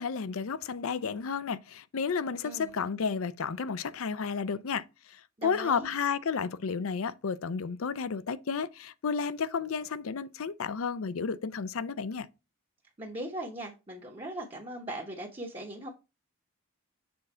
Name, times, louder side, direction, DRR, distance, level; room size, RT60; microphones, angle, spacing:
voice 1, 0.0-12.3, left 5 dB, 75° left, 0.5 m, -32 dB
voice 2, 2.4-2.9 5.4-5.9 13.0-15.9, right 1 dB, 25° right, 0.9 m, -39 dB
7.0 x 3.8 x 4.3 m
head